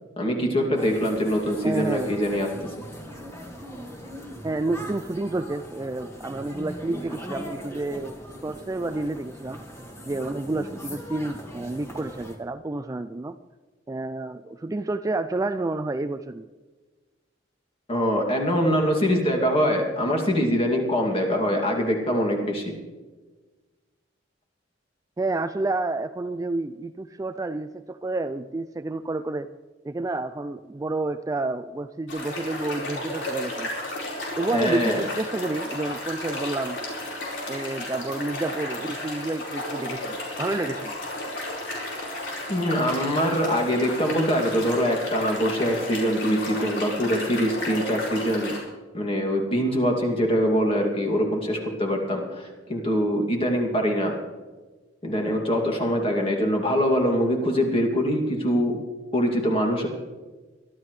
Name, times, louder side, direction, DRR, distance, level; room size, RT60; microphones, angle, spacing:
voice 1, 0.2-2.5 17.9-22.7 34.5-35.0 42.5-48.5 48.9-54.2 55.0-58.8 59.1-59.9, equal, 30° left, 1 dB, 2.5 m, -23 dB
sound 1, 0.7-12.4, equal, 15° left, 1.9 m, -40 dB
voice 2, 1.6-2.2 4.4-9.6 10.0-13.4 13.9-16.5 25.2-29.5 29.8-33.8 34.4-36.8 37.5-40.9, right 2 dB, 20° right, 9 dB, 0.3 m, -29 dB
sound 2, 32.1-48.6, left 1 dB, 85° left, 4.6 m, -33 dB
23.0 x 12.5 x 3.3 m, 1.3 s
head